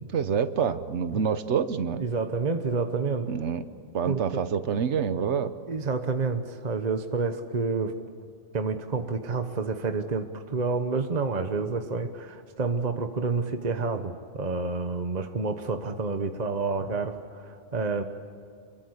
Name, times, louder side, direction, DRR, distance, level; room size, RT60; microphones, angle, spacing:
voice 1, 0.1-2.0 3.3-3.6 3.9-5.5, right 7 dB, 80° right, 11 dB, 1.3 m, -27 dB
voice 2, 2.0-3.4 4.0-4.4 5.7-8.0 8.5-18.0, right 4 dB, 40° right, 7 dB, 1.1 m, -29 dB
27.0 x 23.0 x 8.1 m, 2.2 s
omnidirectional pair, 1.2 m